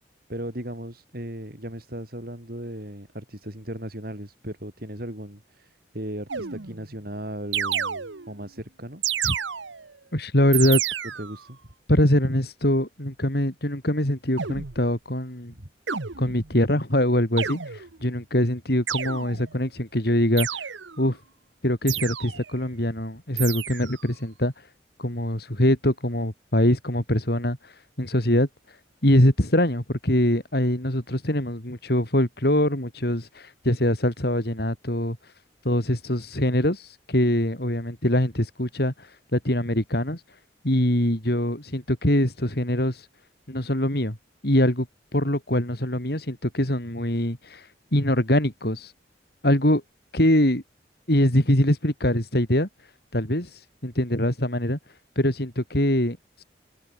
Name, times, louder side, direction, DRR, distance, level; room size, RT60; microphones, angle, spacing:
voice 1, 0.3-9.0 11.2-11.6 15.5-15.7, right 1 dB, 55° right, 4.7 m, -37 dB
sound 1, 6.3-6.9 7.5-8.4 9.0-10.0 10.5-11.4 14.4-14.9 15.9-16.6 17.4-18.0 18.9-19.6 20.4-21.0 21.9-22.6 23.4-24.0, right 9 dB, 80° right, 1.2 m, -30 dB
voice 2, 10.1-10.8 11.9-15.5 16.2-20.7 21.0-21.2 21.6-24.7 25.0-35.3 35.6-40.4 40.6-43.1 43.5-44.2 44.4-44.9 45.1-48.9 49.4-49.8 50.1-50.6 51.1-56.4, left 1 dB, 55° left, 4.1 m, -23 dB
open air
head